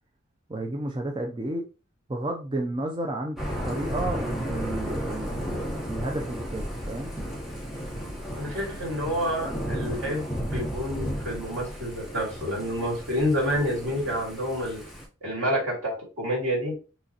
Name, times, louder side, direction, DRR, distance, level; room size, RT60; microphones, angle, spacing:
voice 1, 0.5-1.7 2.1-3.4 3.6-5.6 5.9-7.1, right 1 dB, 25° right, 0.4 m, -31 dB
Thunder / Rain, 3.4-15.0, equal, ahead, 1.0 m, -34 dB
voice 2, 8.4-14.8 15.2-16.7, equal, 75° right, 2.6 m, -28 dB
6.3 x 3.0 x 2.8 m
head